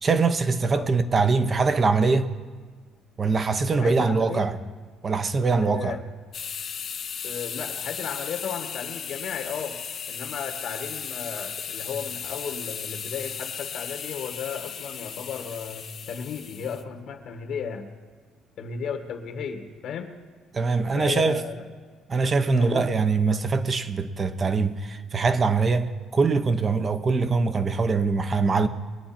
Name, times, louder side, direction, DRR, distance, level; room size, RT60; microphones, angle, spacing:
voice 1, 0.0-2.3 3.2-4.6 5.0-6.0 20.5-21.4 22.1-28.7, right 4 dB, 30° right, 0.9 m, -23 dB
voice 2, 3.8-4.6 5.6-6.0 7.2-9.8 10.1-17.9 18.6-20.1 20.9-21.6 22.6-22.9, left 7 dB, 65° left, 1.6 m, -34 dB
sound 1, 6.3-16.8, left 7 dB, 50° left, 0.7 m, -36 dB
22.0 x 8.9 x 4.3 m
cardioid pair, 105°, 0 cm